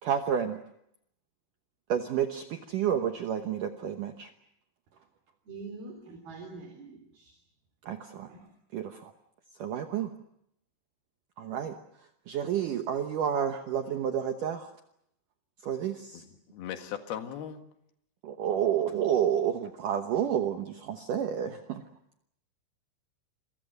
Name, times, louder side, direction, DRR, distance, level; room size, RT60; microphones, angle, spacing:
voice 1, 0.0-0.6 1.9-4.3 7.9-8.3 8.7-9.1 9.6-10.1 11.4-11.8 12.3-14.7 15.6-16.2 18.2-21.8, right 9 dB, 75° right, 6 dB, 1.9 m, -30 dB
voice 2, 5.5-7.3 8.3-8.5, right 3 dB, 55° right, 4 dB, 5.0 m, -44 dB
voice 3, 16.1-17.6, left 9 dB, 60° left, 6 dB, 3.4 m, -38 dB
29.0 x 23.0 x 6.6 m, 0.76 s
omnidirectional pair, 5.4 m